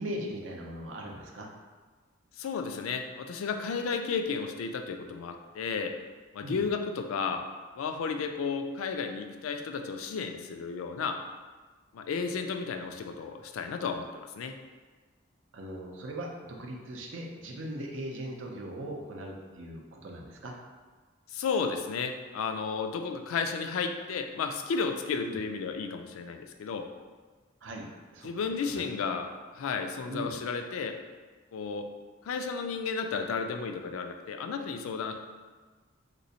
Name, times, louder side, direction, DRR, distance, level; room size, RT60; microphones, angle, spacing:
voice 1, 0.0-1.5 6.4-6.6 15.5-20.5 25.2-25.4 27.6-27.9 28.1-28.3 28.7-28.8 30.1-30.3, right 1 dB, 70° right, 1 dB, 0.5 m, -39 dB
voice 2, 2.4-5.9 6.3-7.4 7.8-11.2 11.9-14.5 21.3-26.9 28.2-29.3 29.5-31.0 31.5-31.9 32.2-35.1, left 5 dB, 90° left, 6 dB, 0.3 m, -33 dB
3.3 x 2.9 x 2.7 m, 1.3 s
head